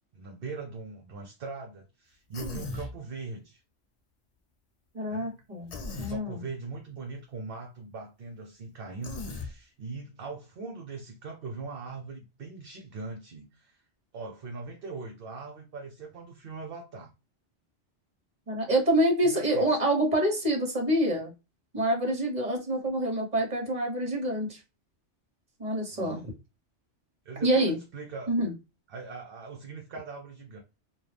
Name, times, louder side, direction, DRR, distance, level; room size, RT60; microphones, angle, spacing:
voice 1, 0.1-3.6 5.1-5.4 5.9-13.8 14.1-17.1 19.2-19.7 25.9-26.3 27.2-28.3 28.9-30.6, right 4 dB, 55° right, 0.9 m, -41 dB
Human voice, 2.3-2.9 5.7-6.2 9.0-9.5, left 2 dB, 45° left, 0.5 m, -37 dB
voice 2, 4.9-5.7 6.0-6.4 18.5-21.3 21.7-24.6 25.6-26.2 27.4-27.8 28.3-28.5, right 1 dB, 35° right, 1.3 m, -26 dB
4.2 x 2.4 x 3.3 m
omnidirectional pair, 1.2 m